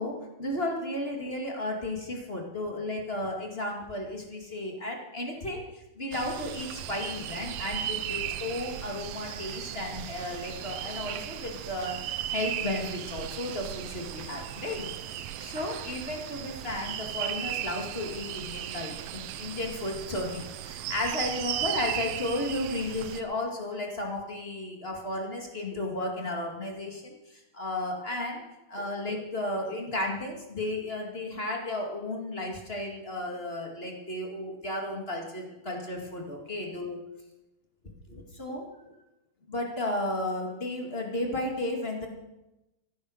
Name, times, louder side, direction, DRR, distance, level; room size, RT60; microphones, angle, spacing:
voice 1, 0.0-12.0 12.3-14.9 15.4-28.4 28.7-37.0 38.1-38.6 39.5-42.1, left 1 dB, 25° left, 0 dB, 1.2 m, -34 dB
sound 1, 6.1-23.2, right 12 dB, 80° right, 2.1 m, -36 dB
15.5 x 11.5 x 6.4 m, 0.97 s
omnidirectional pair, 4.8 m